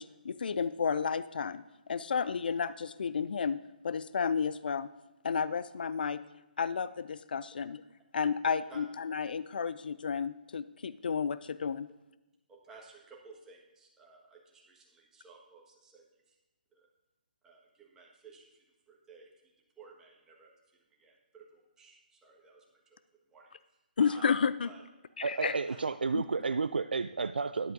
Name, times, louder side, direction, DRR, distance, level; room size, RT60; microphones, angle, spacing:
voice 1, 0.0-3.6 3.8-4.9 5.2-6.2 6.6-7.8 8.1-11.9 24.0-24.7 25.2-25.6 26.1-26.2, left 6 dB, 70° left, 16 dB, 0.4 m, -32 dB
voice 2, 8.5-8.8 12.5-16.4 16.7-16.9 17.4-19.5 19.8-20.5 20.9-23.0 23.3-24.3 24.6-24.8 25.3-25.8, right 3 dB, 10° right, -2 dB, 1.6 m, -56 dB
voice 3, 25.2-27.7, right 4 dB, 90° right, 11 dB, 0.3 m, -31 dB
12.5 x 11.0 x 2.7 m, 1.0 s
hypercardioid pair, 150°, 5 cm